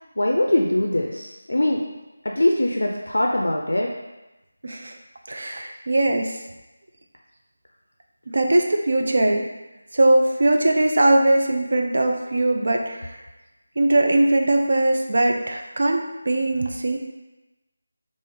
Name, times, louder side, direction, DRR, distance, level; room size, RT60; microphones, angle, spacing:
voice 1, 0.2-1.8 2.2-3.9, left 1 dB, 80° left, 0 dB, 0.4 m, -22 dB
voice 2, 4.6-5.0 5.3-6.4 8.3-9.5 9.9-13.2 13.8-17.0, right 1 dB, 65° right, 3 dB, 0.4 m, -20 dB
3.2 x 2.0 x 3.5 m, 1.0 s
figure-of-eight pair, 165°, 0 cm